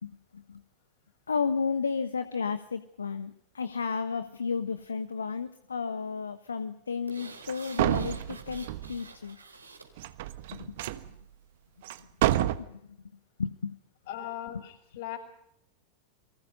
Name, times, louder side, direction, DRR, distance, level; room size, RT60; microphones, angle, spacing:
voice 1, 0.0-0.6 1.3-9.4 10.5-11.0 12.4-13.0 13.4-13.8 14.5-14.6, left 5 dB, 75° left, 11 dB, 1.3 m, -33 dB
sound 1, 7.1-9.9 10.3-10.4, right 4 dB, 80° right, 4.1 m, -48 dB
sound 2, 7.5-7.6 7.8-9.0 10.0-11.1 11.8-12.0 12.2-12.6, right 14 dB, 55° right, 1.4 m, -28 dB
voice 2, 14.1-15.2, left 12 dB, 55° left, 3 dB, 7.8 m, -38 dB
29.5 x 24.0 x 5.4 m, 0.74 s
figure-of-eight pair, 90°, 0 cm